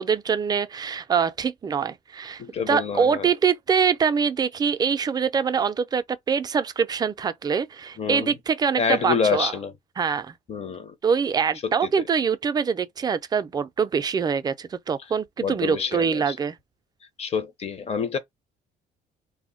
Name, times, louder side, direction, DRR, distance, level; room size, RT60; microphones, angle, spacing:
voice 1, 0.0-9.5 10.0-10.3 11.0-16.5, right 6 dB, 25° right, 0.3 m, -24 dB
voice 2, 2.4-3.3 8.0-8.3 8.8-9.7 10.5-10.9 11.6-11.7 15.4-16.3 17.2-18.2, left 6 dB, 40° left, 0.6 m, -27 dB
2.1 x 2.1 x 3.6 m
cardioid pair, 110°, 17 cm